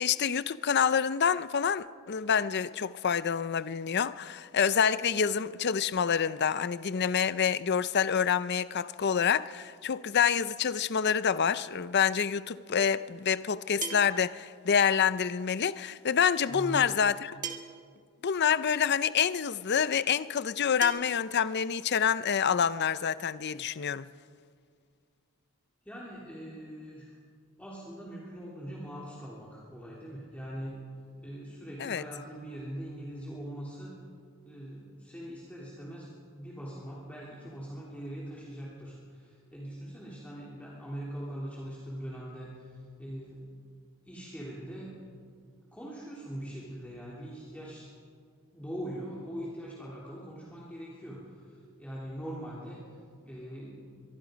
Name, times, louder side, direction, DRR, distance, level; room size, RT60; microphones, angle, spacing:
voice 1, 0.0-17.4 18.2-24.1 31.8-32.0, left 7 dB, 50° left, 0.6 m, -27 dB
sound 1, 13.8-14.3 15.8-15.9 17.4-17.9 19.1-19.2 20.8-20.9, right 8 dB, 35° right, 1.5 m, -37 dB
voice 2, 16.4-17.0 25.8-27.1 27.6-30.8 31.2-33.9 34.4-43.5 44.0-44.9 45.7-47.9 48.5-52.8 53.2-53.9, equal, 5° left, 3.3 m, -42 dB
23.5 x 23.5 x 5.2 m
head